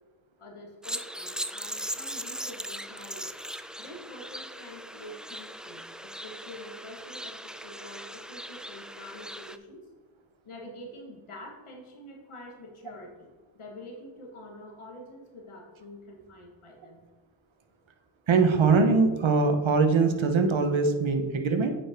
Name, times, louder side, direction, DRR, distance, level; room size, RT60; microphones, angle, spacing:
voice 1, 0.4-3.3 3.8-9.9 10.5-13.3 13.5-17.0, left 1 dB, 80° left, 1 dB, 1.9 m, -46 dB
sound 1, 0.8-9.6, equal, ahead, 0.4 m, -39 dB
voice 2, 18.3-21.7, right 4 dB, 70° right, 7 dB, 1.2 m, -22 dB
8.7 x 5.2 x 4.5 m, 1.2 s
cardioid pair, 50°, 49 cm